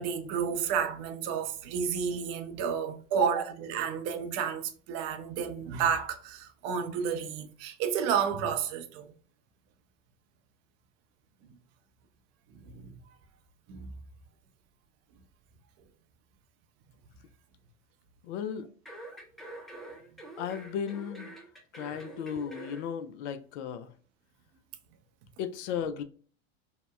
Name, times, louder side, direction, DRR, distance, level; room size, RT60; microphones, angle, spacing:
voice 1, 0.0-9.1 12.5-13.0 13.7-13.9, right 7 dB, 40° right, 0.5 m, -31 dB
voice 2, 18.2-18.7 20.4-21.3 21.7-23.9 25.4-26.0, left 8 dB, 60° left, 0.5 m, -35 dB
sound 1, 18.9-22.9 23.2-23.3, right 2 dB, ahead, 0.6 m, -46 dB
2.8 x 2.0 x 2.2 m
hypercardioid pair, 90°, 39 cm